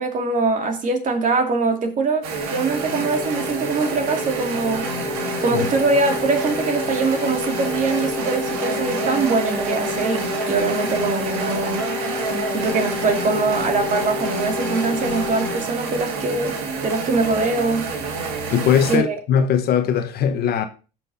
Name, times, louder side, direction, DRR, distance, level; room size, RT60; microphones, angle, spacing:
voice 1, 0.0-2.3 2.5-4.9 5.4-11.8 12.5-16.6 16.8-17.9 18.9-19.2, right 3 dB, 45° right, 2.3 m, -22 dB
sound 1, 2.2-19.0, right 4 dB, 80° right, 1.9 m, -28 dB
sound 2, 2.6-15.6, left 7 dB, 5° left, 1.6 m, -31 dB
voice 2, 18.5-20.7, left 8 dB, 55° left, 1.1 m, -20 dB
17.0 x 6.1 x 2.7 m
hypercardioid pair, 75°, 19 cm